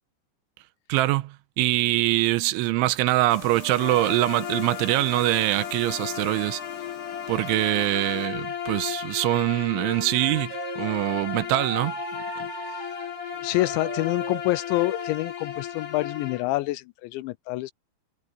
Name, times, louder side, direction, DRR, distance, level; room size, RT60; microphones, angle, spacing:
voice 1, 0.9-6.6 7.3-12.0 12.4-12.5, right 17 dB, 90° right, 3.2 m, -24 dB
sound 1, 3.3-8.3, left 10 dB, 60° left, 2.3 m, -42 dB
Bowed string instrument, 3.7-16.5, left 9 dB, 35° left, 3.3 m, -34 dB
Wind instrument woodwind instrument, 9.8-15.1, right 6 dB, 45° right, 3.3 m, -39 dB
voice 2, 13.3-17.7, left 19 dB, 85° left, 2.8 m, -27 dB
omnidirectional pair, 5.4 m